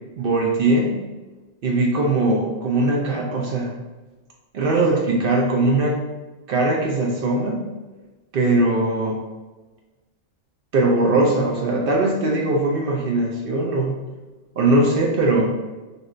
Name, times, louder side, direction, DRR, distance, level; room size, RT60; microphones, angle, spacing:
voice 1, 0.2-1.0 1.6-3.7 4.5-6.0 6.5-7.7 8.3-9.2 10.7-13.9 14.6-15.5, right 2 dB, 60° right, -1 dB, 0.6 m, -20 dB
3.4 x 2.6 x 2.4 m, 1.2 s
omnidirectional pair, 1.2 m